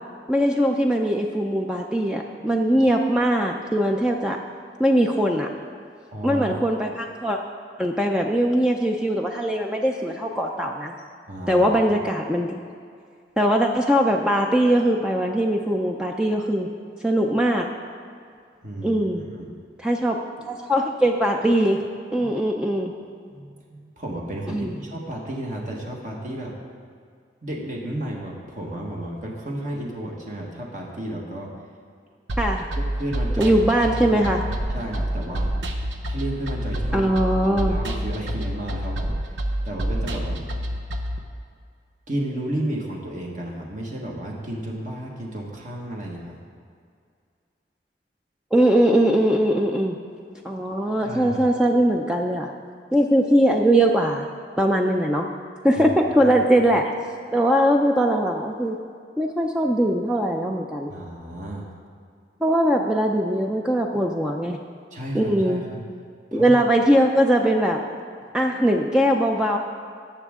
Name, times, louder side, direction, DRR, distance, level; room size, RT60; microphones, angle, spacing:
voice 1, 0.3-4.4 4.8-5.5 6.2-7.4 7.8-10.9 11.5-12.6 13.4-16.7 17.0-17.7 18.8-19.2 19.8-21.8 22.1-22.9 24.5-24.7 32.4-32.7 33.4-34.4 36.9-38.0 48.5-50.0 50.4-52.5 52.9-54.3 54.6-55.3 55.6-56.8 57.3-58.8 59.2-60.9 62.4-64.6 65.1-65.6 66.3-67.8 68.3-69.6, equal, 5° right, 1 dB, 0.4 m, -21 dB
voice 2, 6.1-6.6 11.3-11.7 18.6-19.5 22.2-22.3 23.3-26.5 27.4-31.5 32.8-33.6 33.9-34.4 34.7-35.5 36.1-37.1 37.5-39.4 39.6-40.5 42.1-46.3 51.0-51.4 55.8-55.9 56.2-56.3 60.9-61.7 64.9-65.8 66.3-66.6, right 1 dB, 45° right, -2 dB, 1.4 m, -32 dB
sound 1, 32.3-41.2, equal, 85° right, 0.9 m, -27 dB
18.0 x 7.3 x 3.7 m, 2.2 s
head